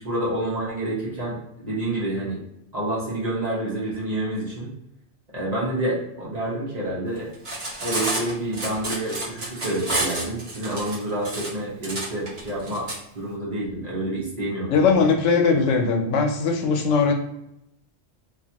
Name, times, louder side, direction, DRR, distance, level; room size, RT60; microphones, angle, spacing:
voice 1, 0.0-2.4 2.7-4.7 5.3-7.3 7.8-15.1, right 1 dB, 40° right, -7 dB, 1.0 m, -28 dB
Cutlery silverware, 7.3-13.0, right 2 dB, 60° right, 1.2 m, -29 dB
voice 2, 14.7-17.1, left 5 dB, 90° left, 3 dB, 0.9 m, -20 dB
2.9 x 2.5 x 2.7 m, 0.82 s
omnidirectional pair, 1.2 m